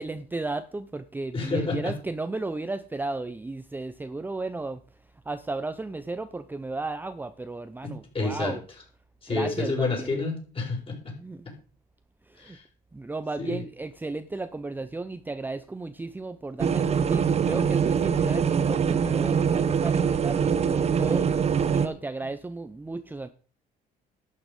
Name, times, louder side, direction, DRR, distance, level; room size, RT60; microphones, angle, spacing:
voice 1, 0.0-8.6 9.3-10.2 11.2-11.5 12.2-12.6 12.9-23.3, right 3 dB, 10° right, 11 dB, 0.6 m, -34 dB
voice 2, 1.3-1.9 7.8-8.6 9.2-11.2 11.5-11.6 12.4-12.6 13.4-13.6, left 3 dB, 30° left, 1 dB, 5.1 m, -29 dB
sound 1, 16.6-21.9, right 7 dB, 40° right, 1.1 m, -23 dB
11.5 x 8.6 x 5.3 m, 0.40 s
cardioid pair, 110°, 17 cm